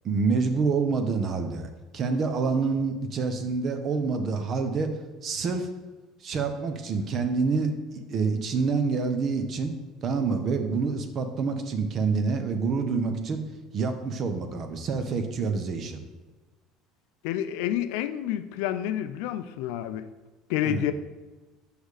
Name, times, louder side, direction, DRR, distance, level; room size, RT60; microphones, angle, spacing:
voice 1, 0.0-1.7 1.9-4.9 5.2-5.7 6.2-9.7 10.0-13.4 13.7-16.0 20.6-20.8, right 4 dB, 45° right, 7 dB, 0.9 m, -27 dB
voice 2, 17.2-20.1 20.5-20.9, left 11 dB, 80° left, 11 dB, 0.4 m, -29 dB
6.4 x 5.0 x 5.0 m, 1.2 s
supercardioid pair, 95°, 0 cm